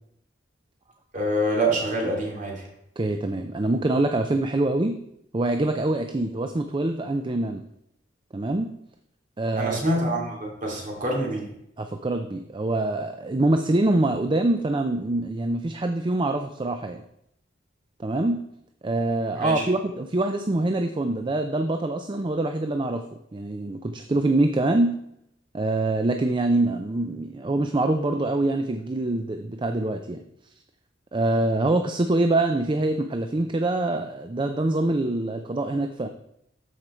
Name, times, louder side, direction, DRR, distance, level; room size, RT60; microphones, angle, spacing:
voice 1, 1.1-2.6 9.6-11.5 19.4-19.7, right 1 dB, 45° right, -1 dB, 2.9 m, -26 dB
voice 2, 3.0-5.0 5.3-7.6 8.3-8.7 9.4-9.8 11.8-17.0 18.0-18.4 18.8-23.0 23.3-25.0 25.5-30.2 31.1-36.1, right 2 dB, 25° right, 6 dB, 0.5 m, -24 dB
13.0 x 5.1 x 4.4 m, 0.77 s
head